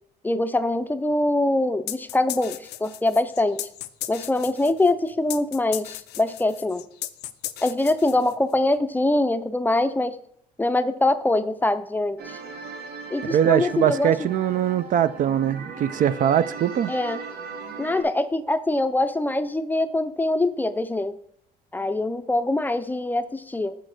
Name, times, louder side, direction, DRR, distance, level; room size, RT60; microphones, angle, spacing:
voice 1, 0.2-3.6 4.1-6.8 7.6-10.2 10.6-12.4 13.1-14.1 16.9-17.2 17.8-21.1 21.7-23.7, left 2 dB, 10° left, 0.5 m, -23 dB
sound 1, 1.9-8.6, left 14 dB, 75° left, 0.5 m, -36 dB
sound 2, 12.2-18.0, right 5 dB, 70° right, 1.4 m, -38 dB
voice 2, 13.2-16.9, right 10 dB, 50° right, 0.4 m, -22 dB
6.4 x 5.1 x 6.4 m
cardioid pair, 110°, 17 cm